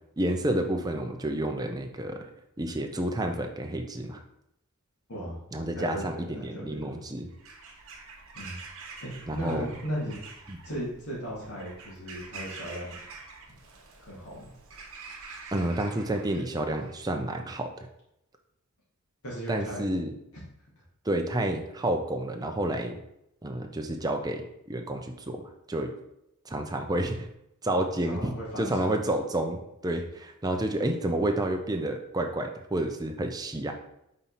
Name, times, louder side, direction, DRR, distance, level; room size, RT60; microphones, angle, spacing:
voice 1, 0.2-2.3 2.6-4.2 5.5-7.3 9.3-9.7 10.5-10.6 15.5-17.9 19.5-20.1 21.0-23.0 23.4-25.9 26.4-27.3 27.6-33.7, right 1 dB, 15° right, 4 dB, 0.6 m, -30 dB
voice 2, 5.8-6.9 8.3-8.6 9.0-10.2 10.6-12.9 13.5-13.6 14.0-14.5 19.2-19.9 27.7-29.0, equal, 80° left, -6 dB, 2.3 m, -37 dB
Bird vocalization bird call bird song / Crow, 7.3-17.2, right 4 dB, 65° right, 1.1 m, -46 dB
5.4 x 4.3 x 4.1 m, 0.81 s
head